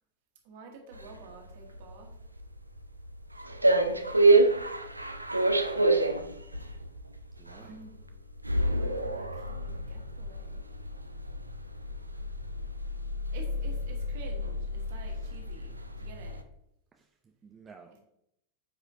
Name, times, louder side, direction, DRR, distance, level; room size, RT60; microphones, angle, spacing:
voice 1, 0.4-2.1 7.6-8.1 8.6-10.7 13.3-16.4, right 3 dB, 50° right, 1 dB, 1.7 m, -50 dB
sound 1, 0.9-16.4, right 2 dB, 85° right, 0.5 m, -29 dB
voice 2, 5.7-6.5 7.4-7.8 15.2-15.3 16.9-18.0, right 5 dB, 20° right, 3 dB, 0.6 m, -54 dB
8.8 x 4.9 x 2.7 m, 0.79 s
figure-of-eight pair, 90°, 0 cm